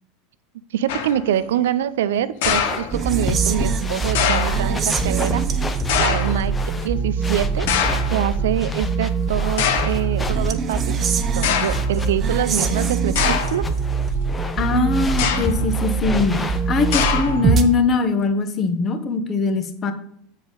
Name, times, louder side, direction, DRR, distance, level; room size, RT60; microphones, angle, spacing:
voice 1, 0.7-5.4 6.0-6.5 6.8-7.7 8.1-11.0 11.4-13.7, right 10 dB, 85° right, 14 dB, 0.5 m, -25 dB
sound 1, 0.9-1.3 2.4-3.3 4.1-4.7 5.9-6.5 7.7-8.2 9.0-9.1 9.6-10.1 10.9-11.0 11.4-11.9 13.2-13.7 15.1-15.7 16.9-17.5, left 7 dB, 75° left, 1.0 m, -23 dB
sound 2, 2.4-17.2, left 3 dB, 15° left, 0.8 m, -33 dB
sound 3, 2.9-17.6, right 5 dB, 35° right, 0.8 m, -23 dB
voice 2, 14.6-16.4 16.7-19.9, left 4 dB, 35° left, 8 dB, 1.2 m, -21 dB
7.3 x 5.0 x 5.3 m, 0.69 s
hypercardioid pair, 105°, 0 cm